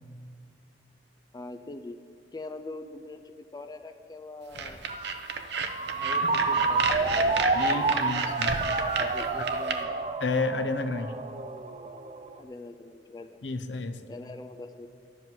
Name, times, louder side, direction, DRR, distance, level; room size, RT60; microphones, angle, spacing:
voice 1, 1.3-2.0 2.3-4.8 6.0-8.2 9.0-10.0 12.4-13.4 14.1-14.9, left 2 dB, 20° left, 7 dB, 0.4 m, -43 dB
sound 1, 4.5-9.8, right 5 dB, 70° right, 0.8 m, -31 dB
Ringtone, 4.9-12.4, right 3 dB, 35° right, 0.5 m, -29 dB
voice 2, 7.5-8.6 10.2-11.1 13.4-14.0, left 3 dB, 70° left, 9 dB, 0.8 m, -31 dB
11.0 x 7.8 x 7.6 m, 2.2 s
head